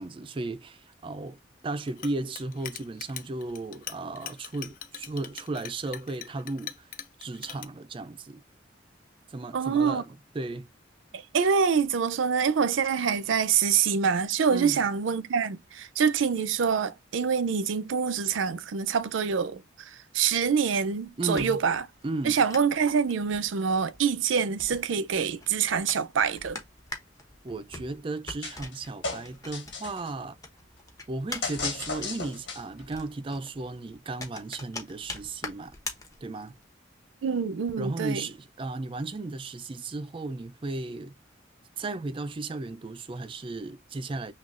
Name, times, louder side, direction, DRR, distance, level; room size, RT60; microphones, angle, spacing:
voice 1, 0.0-6.9 7.2-8.4 9.3-10.1 10.3-10.7 14.5-14.8 21.2-21.6 22.0-22.4 27.4-30.4 31.1-35.7 36.2-36.5 37.8-41.1 41.8-44.3, right 2 dB, 25° right, 0.4 m, -35 dB
Chink clink, 1.9-7.7, left 10 dB, 45° left, 0.4 m, -41 dB
voice 2, 9.5-10.0 11.1-21.8 22.2-26.6 37.2-38.2, right 6 dB, 85° right, 0.5 m, -26 dB
sound 1, 21.0-30.1 30.4-36.6, left 2 dB, 20° left, 0.9 m, -43 dB
sound 2, 28.4-28.8 29.0-30.1 31.4-32.8, left 4 dB, 70° left, 1.6 m, -34 dB
6.0 x 2.3 x 2.4 m
head